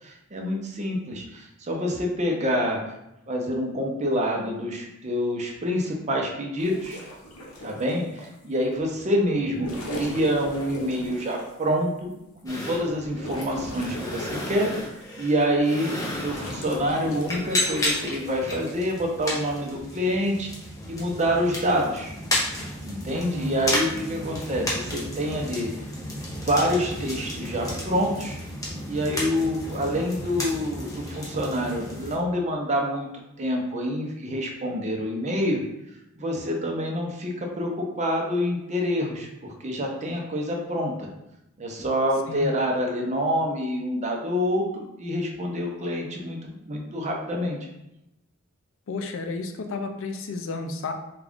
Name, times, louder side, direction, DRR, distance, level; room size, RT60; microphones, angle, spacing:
voice 1, 0.0-2.8 3.3-7.1 7.6-12.1 12.4-20.5 20.9-22.1 22.8-25.7 26.3-28.4 28.8-33.1 33.4-35.6 36.2-41.1 41.6-47.6, equal, 35° right, 0 dB, 0.6 m, -27 dB
sound 1, 6.6-8.3 9.4-11.5 12.1-12.2 12.7-15.2 15.7-18.3 19.5-19.8, left 1 dB, 80° left, 0.8 m, -38 dB
sound 2, 12.5-32.2, left 1 dB, 15° left, 0.8 m, -33 dB
voice 2, 23.1-23.6 42.3-42.5 48.9-50.9, left 3 dB, 65° left, 5 dB, 0.4 m, -32 dB
3.5 x 2.4 x 3.5 m, 0.87 s
head